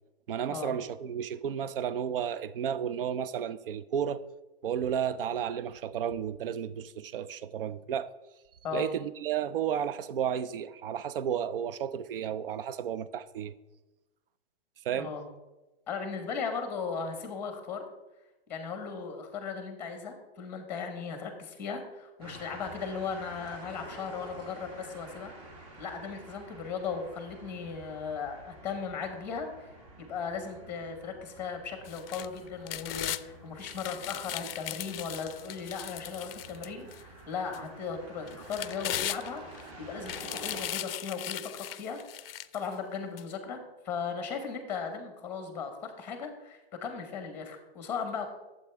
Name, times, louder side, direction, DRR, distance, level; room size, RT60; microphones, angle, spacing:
voice 1, 0.3-4.2 4.6-8.1 8.7-13.5 14.8-15.1, right 8 dB, 60° right, 0.5 m, -32 dB
voice 2, 14.9-15.2 15.9-17.8 18.5-29.5 30.0-39.4 39.8-43.6 43.8-48.3, left 5 dB, 5° left, 0.9 m, -37 dB
sound 1, 22.2-40.7, right 2 dB, 30° right, 1.7 m, -49 dB
sound 2, 31.8-33.2 33.6-37.0 37.5-37.6 38.3-39.6 40.0-42.7 43.2-43.3, left 12 dB, 65° left, 0.4 m, -38 dB
12.0 x 7.8 x 3.4 m
hypercardioid pair, 170°, 32 cm